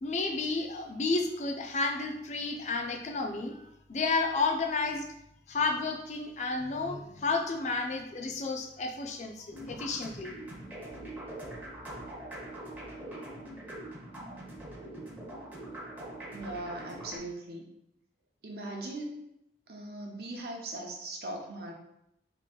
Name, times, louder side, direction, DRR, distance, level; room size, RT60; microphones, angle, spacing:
voice 1, 0.0-3.6 3.9-5.1 5.5-10.4, left 3 dB, 40° left, 4 dB, 0.4 m, -31 dB
sound 1, 9.5-17.2, right 1 dB, 10° right, 0.6 m, -43 dB
voice 2, 16.3-17.6 18.4-19.2 19.7-21.7, right 1 dB, 60° right, 0 dB, 0.7 m, -39 dB
3.0 x 2.5 x 3.7 m, 0.80 s
head